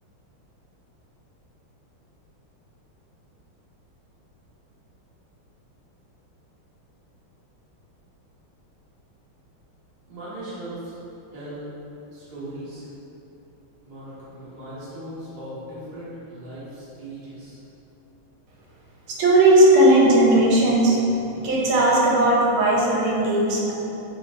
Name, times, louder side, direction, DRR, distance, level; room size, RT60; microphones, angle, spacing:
voice 1, 10.1-10.9 11.3-11.6 12.1-12.9 13.8-17.6, right 1 dB, 35° right, -11 dB, 0.6 m, -38 dB
voice 2, 19.1-23.7, right 1 dB, 80° right, -4 dB, 1.4 m, -17 dB
3.8 x 2.5 x 3.0 m, 3.0 s
omnidirectional pair, 2.3 m